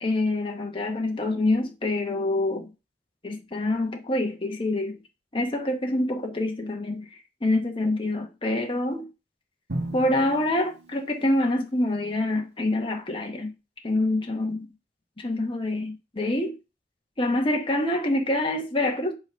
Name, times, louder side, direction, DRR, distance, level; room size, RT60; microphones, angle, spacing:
voice 1, 0.0-2.7 3.2-5.0 5.3-7.1 7.4-9.1 9.9-13.5 13.8-14.7 15.2-16.5 17.2-19.1, left 1 dB, 30° left, 1.1 m, -26 dB
Drum, 9.7-11.7, right 1 dB, 85° right, 1.7 m, -36 dB
8.1 x 3.8 x 5.6 m
head